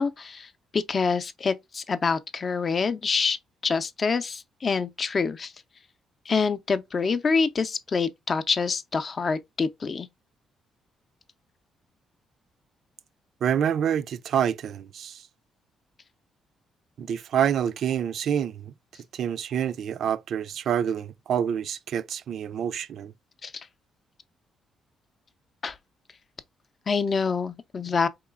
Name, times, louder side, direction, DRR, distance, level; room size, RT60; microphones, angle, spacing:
voice 1, 0.0-3.4 3.6-5.5 6.3-10.1 23.4-23.7 25.6-25.8 26.9-28.1, left 5 dB, 40° left, 0.5 m, -26 dB
voice 2, 13.4-15.2 17.0-18.7 19.1-23.1, right 9 dB, 65° right, 0.3 m, -27 dB
3.8 x 2.9 x 2.2 m
cardioid pair, 90°, 0 cm